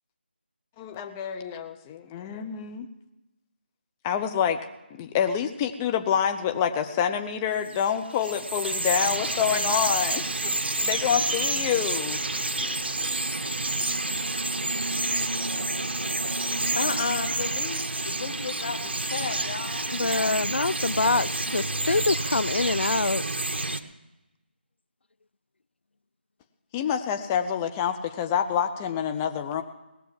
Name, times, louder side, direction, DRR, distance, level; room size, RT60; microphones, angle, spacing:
voice 1, 0.8-2.9 4.0-4.6 4.9-10.5 10.8-12.2 26.7-29.6, left 8 dB, 15° left, 6 dB, 0.6 m, -27 dB
Bird vocalization bird call bird song, 7.7-23.8, right 2 dB, 75° right, 1.0 m, -29 dB
voice 2, 16.7-20.1 21.0-21.2, left 5 dB, 40° left, 5 dB, 1.8 m, -33 dB
voice 3, 19.9-23.2, left 3 dB, 80° left, 21 dB, 0.4 m, -25 dB
19.0 x 7.0 x 7.4 m, 1.0 s
figure-of-eight pair, 160°, 6 cm